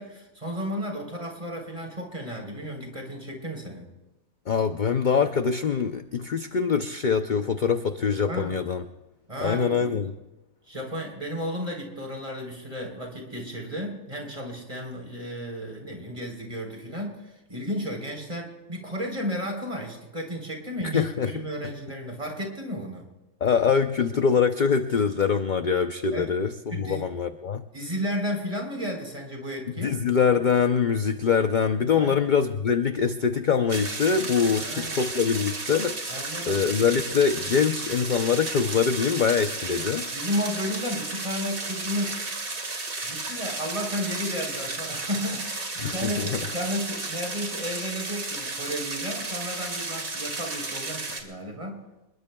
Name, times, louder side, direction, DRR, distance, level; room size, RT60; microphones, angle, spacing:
voice 1, 0.0-3.9 8.3-8.6 9.3-10.0 10.7-23.1 26.1-26.3 26.7-27.0 27.7-30.0 31.9-32.2 34.6-35.0 36.1-36.6 40.1-42.3 43.0-51.8, equal, 25° right, 1 dB, 3.8 m, -33 dB
voice 2, 4.5-8.8 9.4-10.1 20.8-21.3 23.4-27.6 29.8-36.0 36.5-40.1 45.8-46.5, left 6 dB, 50° left, 7 dB, 0.6 m, -24 dB
sound 1, 33.7-51.2, right 3 dB, 75° right, 2.6 m, -33 dB
27.5 x 21.5 x 2.3 m, 0.99 s
omnidirectional pair, 1.5 m